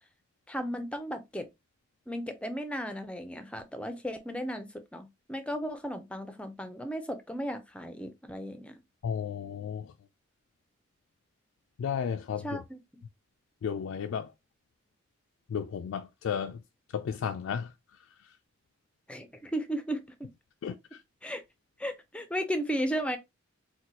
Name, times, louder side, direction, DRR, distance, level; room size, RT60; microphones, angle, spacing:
voice 1, 0.5-1.5 2.1-8.8 12.4-13.0 19.1-20.3 21.2-21.4 21.8-23.2, equal, 5° left, 0.4 m, -35 dB
voice 2, 9.0-9.9 11.8-12.6 13.6-14.3 15.5-16.6 16.9-17.7 20.6-21.0, left 7 dB, 85° left, 0.3 m, -33 dB
4.1 x 2.2 x 2.9 m
head